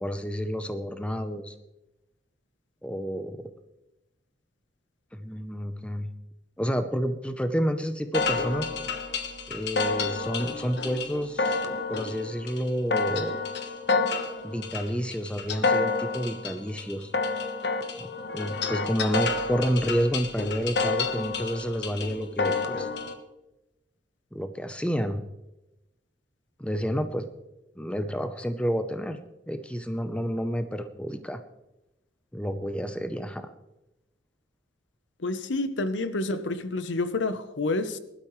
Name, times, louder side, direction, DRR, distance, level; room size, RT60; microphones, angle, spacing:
voice 1, 0.0-1.5 2.8-3.4 5.1-6.1 6.6-8.7 9.5-11.6 11.9-13.4 14.4-17.1 18.0-22.9 24.3-25.2 26.6-27.3 27.8-31.4 32.3-33.5, equal, 5° left, 0.7 m, -30 dB
sound 1, 8.1-23.1, left 3 dB, 65° left, 1.2 m, -29 dB
voice 2, 35.2-38.0, left 2 dB, 85° left, 0.8 m, -29 dB
19.5 x 12.0 x 3.2 m
head